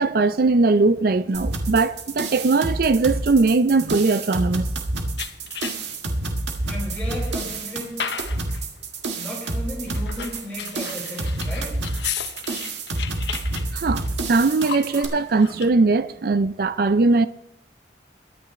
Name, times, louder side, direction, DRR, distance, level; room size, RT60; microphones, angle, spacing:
voice 1, 0.0-4.7 13.7-17.3, right 3 dB, 55° right, 0.4 m, -20 dB
sound 1, 1.3-15.1, right 2 dB, 75° right, 1.9 m, -28 dB
sound 2, 5.2-6.1 6.6-8.7 9.8-15.7, left 7 dB, 75° left, 1.0 m, -35 dB
voice 2, 6.7-8.0 9.1-11.7, equal, 10° left, 4.7 m, -34 dB
23.0 x 9.1 x 3.2 m
head